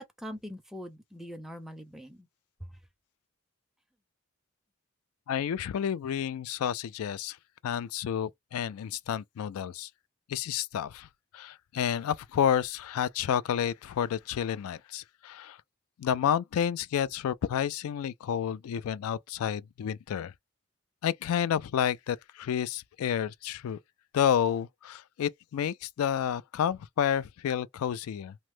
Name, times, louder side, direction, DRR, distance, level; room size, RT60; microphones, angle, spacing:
voice 1, 0.0-2.3 2.6-2.8, equal, ahead, 0.4 m, -42 dB
voice 2, 5.3-7.4 7.6-9.9 10.3-11.1 11.3-15.6 16.0-20.3 21.0-23.8 24.1-28.4, left 9 dB, 85° left, 0.3 m, -30 dB
3.0 x 2.0 x 3.1 m
head